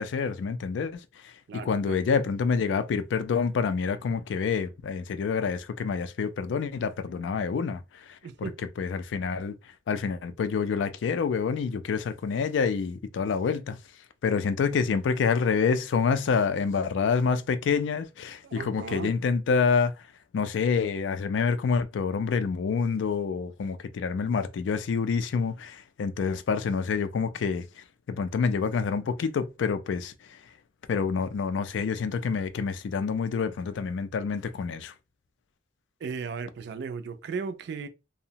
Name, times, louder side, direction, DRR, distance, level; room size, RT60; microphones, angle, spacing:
voice 1, 0.0-1.3 1.6-8.5 8.8-9.6 9.9-13.8 14.2-19.9 20.3-27.7 28.1-30.4 30.9-34.9, left 5 dB, 75° left, 0.3 m, -27 dB
voice 2, 1.5-2.0 8.2-8.6 18.4-19.1 36.0-37.9, right 5 dB, 65° right, 0.3 m, -36 dB
2.6 x 2.0 x 2.8 m
head